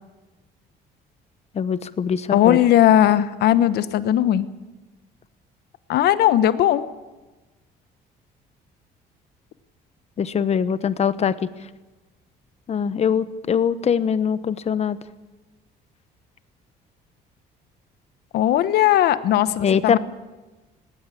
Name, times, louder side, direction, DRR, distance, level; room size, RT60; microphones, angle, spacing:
voice 1, 1.6-2.6 10.2-11.3 12.7-15.0 19.6-20.0, left 7 dB, 40° left, 14 dB, 1.0 m, -22 dB
voice 2, 2.3-4.5 5.9-6.9 18.3-20.0, left 12 dB, 70° left, 13 dB, 1.1 m, -18 dB
19.0 x 17.5 x 8.6 m, 1.2 s
cardioid pair, 110°, 17 cm